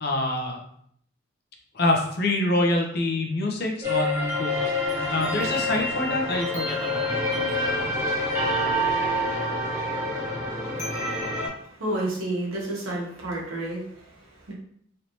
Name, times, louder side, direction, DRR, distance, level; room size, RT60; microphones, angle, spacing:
voice 1, 0.0-0.6 1.7-4.7 5.1-7.0, left 1 dB, 50° left, 1 dB, 0.6 m, -26 dB
sound 1, 3.8-11.5, left 1 dB, 15° right, 0.8 m, -27 dB
voice 2, 11.6-14.5, right 1 dB, 90° right, -4 dB, 1.1 m, -31 dB
3.2 x 2.7 x 2.9 m, 0.66 s
head